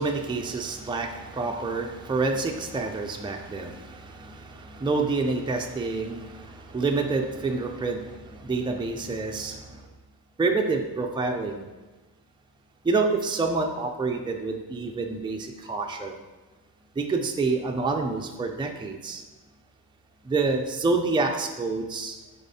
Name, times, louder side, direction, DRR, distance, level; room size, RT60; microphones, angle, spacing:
voice 1, 0.0-9.9 10.4-11.6 12.8-16.1 17.0-19.2 20.2-22.2, right 3 dB, 10° right, 3 dB, 0.4 m, -28 dB
7.0 x 4.2 x 4.1 m, 1.2 s
wide cardioid pair, 160°, 39 cm